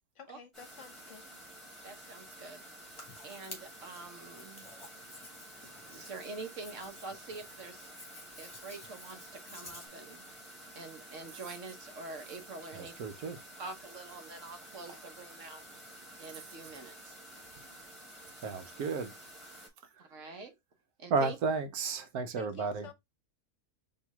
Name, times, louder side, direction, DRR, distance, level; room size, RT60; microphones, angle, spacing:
voice 1, 0.1-1.3 22.4-22.9, left 6 dB, 60° left, 1.1 m, -51 dB
sound 1, 0.5-19.7, right 1 dB, ahead, 2.2 m, -51 dB
voice 2, 1.8-2.6 2.9-4.7 5.9-7.8 8.4-10.2 10.7-13.0 13.6-15.6 16.2-17.1 20.0-20.5 21.0-21.3, right 3 dB, 60° right, 1.3 m, -46 dB
Hands, 2.9-9.9, left 2 dB, 20° left, 1.7 m, -52 dB
voice 3, 12.7-13.4 14.9-15.0 18.4-19.1 19.9-20.3 21.1-22.9, right 4 dB, 85° right, 1.3 m, -33 dB
4.5 x 3.2 x 3.5 m
omnidirectional pair, 1.6 m